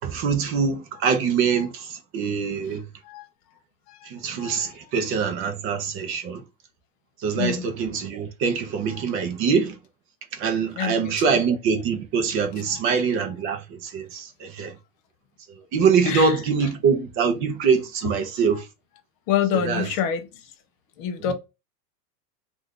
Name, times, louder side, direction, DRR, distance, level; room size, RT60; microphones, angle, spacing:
voice 1, 0.0-2.8 4.1-6.4 7.2-9.8 10.3-14.7 15.7-18.7 19.5-19.9, right 6 dB, 25° right, 0.5 m, -24 dB
voice 2, 7.3-7.7 10.8-11.1 16.1-16.3 19.3-20.3 21.0-21.3, left 9 dB, 25° left, 0.4 m, -26 dB
2.7 x 2.5 x 3.5 m
hypercardioid pair, 115°, 49 cm